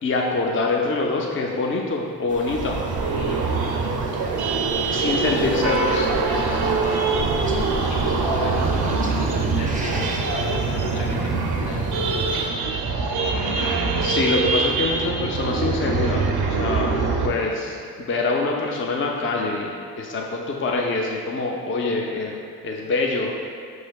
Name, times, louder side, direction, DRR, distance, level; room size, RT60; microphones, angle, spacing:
voice 1, 0.0-2.8 4.9-6.1 14.0-23.3, left 3 dB, 30° left, 0 dB, 0.5 m, -25 dB
sound 1, 2.3-12.5, right 2 dB, 20° right, 0.5 m, -37 dB
sound 2, 2.5-17.3, right 4 dB, 65° right, 0.6 m, -23 dB
voice 2, 3.1-3.4 4.9-12.4, left 3 dB, 85° left, -2 dB, 0.6 m, -34 dB
5.5 x 3.2 x 2.3 m, 2.2 s
supercardioid pair, 40°, 41 cm